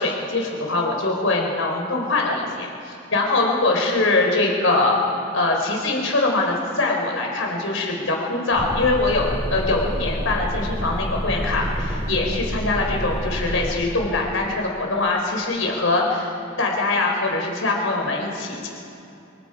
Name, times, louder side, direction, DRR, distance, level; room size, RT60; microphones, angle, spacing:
voice 1, 0.0-5.0 5.3-18.7, left 2 dB, 90° left, 0 dB, 4.2 m, -23 dB
sound 1, 8.5-13.7, equal, 35° right, 5.1 m, -28 dB
26.0 x 23.5 x 4.9 m, 2.7 s
head